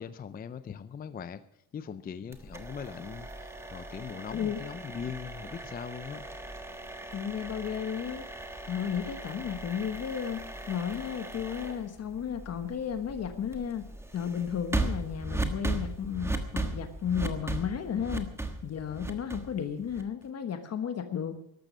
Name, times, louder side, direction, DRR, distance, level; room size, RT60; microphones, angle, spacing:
voice 1, 0.0-1.4 1.7-6.3, left 7 dB, 25° left, 13 dB, 0.5 m, -40 dB
sound 1, 2.3-20.2, right 2 dB, 5° right, 1.3 m, -38 dB
voice 2, 4.3-4.6 7.1-8.3 8.7-10.4 10.7-13.9 14.1-18.3 18.6-21.4, left 8 dB, 40° left, 9 dB, 1.2 m, -33 dB
13.5 x 12.0 x 6.2 m, 0.74 s
cardioid pair, 165°, 40 cm